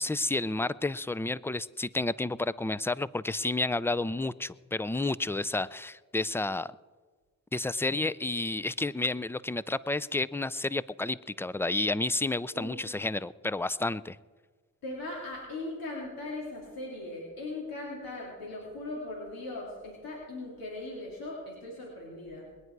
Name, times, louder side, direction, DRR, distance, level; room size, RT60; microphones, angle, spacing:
voice 1, 0.0-6.7 7.5-14.2, left 2 dB, 5° left, 19 dB, 0.4 m, -31 dB
voice 2, 12.5-12.9 14.8-22.5, left 2 dB, 80° left, -3 dB, 3.3 m, -39 dB
21.5 x 9.6 x 4.7 m, 1.4 s
cardioid pair, 60°, 34 cm